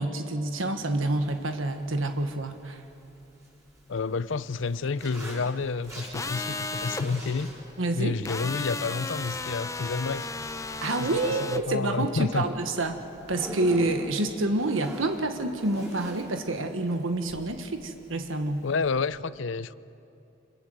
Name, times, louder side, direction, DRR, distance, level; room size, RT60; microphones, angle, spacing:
voice 1, 0.0-2.8 7.8-8.2 10.8-13.0 13.3-18.7, right 2 dB, 80° right, 6 dB, 1.5 m, -28 dB
Zipper (clothing), 1.1-19.0, equal, 15° right, 7.7 m, -45 dB
voice 2, 3.9-7.5 7.9-10.3 11.0-12.5 18.6-19.8, left 4 dB, 70° left, 17 dB, 0.6 m, -30 dB
sound 1, 6.1-7.0 8.2-11.6, left 3 dB, 15° left, 0.8 m, -34 dB
27.0 x 22.0 x 7.9 m, 2.7 s
head